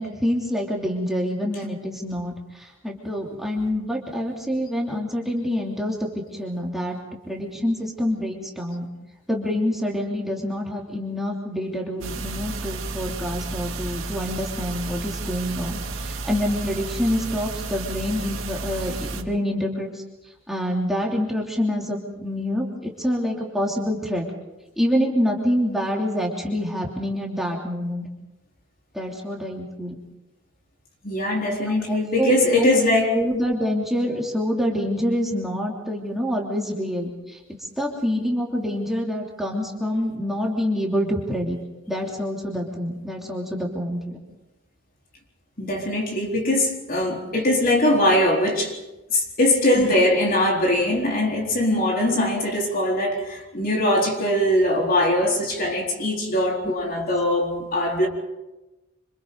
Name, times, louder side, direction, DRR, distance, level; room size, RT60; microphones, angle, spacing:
voice 1, 0.0-6.0 6.3-7.0 7.3-8.9 9.3-20.0 20.5-24.2 24.8-28.1 28.9-30.0 31.7-32.8 33.1-41.6 41.9-44.2 49.7-49.9, equal, ahead, 3.0 m, -26 dB
sound 1, 12.0-19.2, right 3 dB, 80° right, 2.5 m, -32 dB
voice 2, 31.0-33.1 45.6-48.7 49.1-58.1, left 1 dB, 45° left, 4.1 m, -21 dB
27.5 x 26.5 x 4.0 m
head